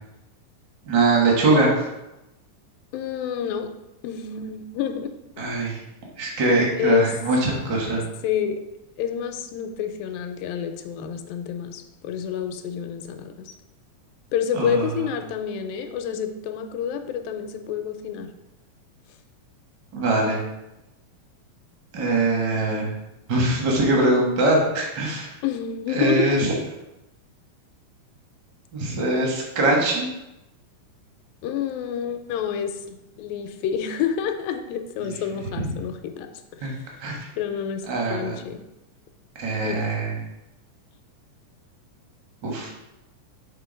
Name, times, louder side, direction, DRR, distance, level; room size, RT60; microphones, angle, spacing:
voice 1, 0.9-1.9 5.4-5.8 6.2-8.0 14.5-14.9 19.9-20.4 21.9-22.9 23.3-25.3 25.9-26.5 28.7-30.1 36.6-36.7 37.0-37.3 37.9-38.4 39.4-40.1 42.4-42.7, right 2 dB, 60° right, -1 dB, 1.1 m, -22 dB
voice 2, 2.9-3.7 4.0-5.1 5.4-5.5 6.8-7.1 8.0-8.6 9.0-13.5 14.3-18.3 25.4-26.4 31.4-32.8 33.2-36.8 37.4-38.6 39.6-39.9, left 8 dB, 80° left, 6 dB, 2.3 m, -28 dB
6.8 x 3.7 x 5.0 m, 0.93 s
omnidirectional pair, 4.1 m